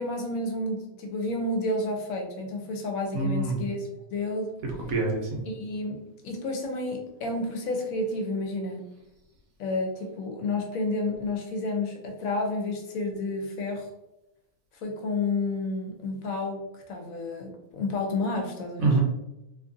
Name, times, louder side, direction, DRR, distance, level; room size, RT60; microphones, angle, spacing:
voice 1, 0.0-4.5 5.4-8.8 9.6-13.9 14.7-19.0, left 2 dB, 70° left, 3 dB, 1.0 m, -30 dB
voice 2, 3.1-3.6 4.6-5.4 18.8-19.0, right 3 dB, 75° right, -1 dB, 1.2 m, -26 dB
2.9 x 2.4 x 2.5 m, 0.90 s
omnidirectional pair, 1.6 m